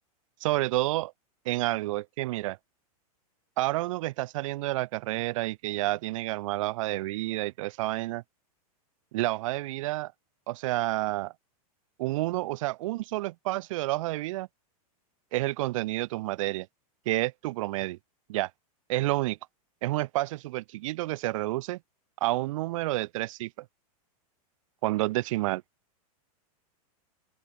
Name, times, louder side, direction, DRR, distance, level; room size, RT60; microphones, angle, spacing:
voice 1, 0.4-1.1 1.4-2.6 3.6-8.2 9.1-10.1 10.5-11.3 12.0-14.5 15.3-16.7 17.0-18.0 18.3-18.5 18.9-19.4 19.8-21.8 22.2-23.6 24.8-25.6, right 18 dB, 60° right, 3.2 m, -29 dB
open air
supercardioid pair, 150°, 19 cm